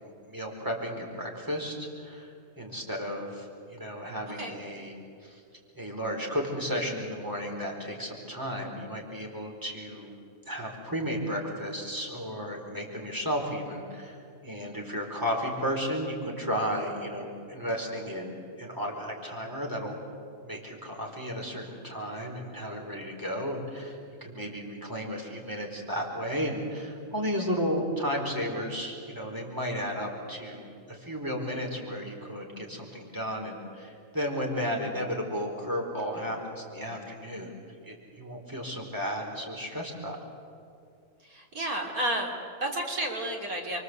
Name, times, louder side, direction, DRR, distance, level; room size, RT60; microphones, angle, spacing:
voice 1, 0.0-4.9 5.2-5.4 5.7-10.1 10.5-14.2 14.4-20.0 20.4-37.5 37.8-40.3, equal, 15° right, 0 dB, 4.6 m, -33 dB
voice 2, 41.3-43.8, right 1 dB, 70° right, 0 dB, 3.6 m, -31 dB
29.5 x 24.0 x 8.2 m, 2.4 s
omnidirectional pair, 1.6 m